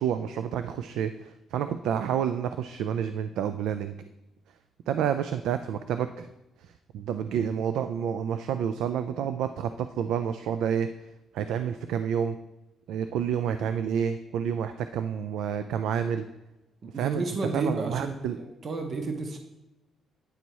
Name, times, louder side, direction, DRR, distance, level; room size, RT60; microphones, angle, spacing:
voice 1, 0.0-3.9 4.9-6.3 6.6-10.9 11.3-12.4 12.9-16.3 16.9-17.2 17.5-18.4, right 8 dB, 90° right, 10 dB, 0.3 m, -29 dB
voice 2, 16.8-19.4, right 3 dB, 35° right, 4 dB, 0.7 m, -32 dB
9.2 x 4.1 x 4.6 m, 0.96 s
cardioid pair, 165°, 0 cm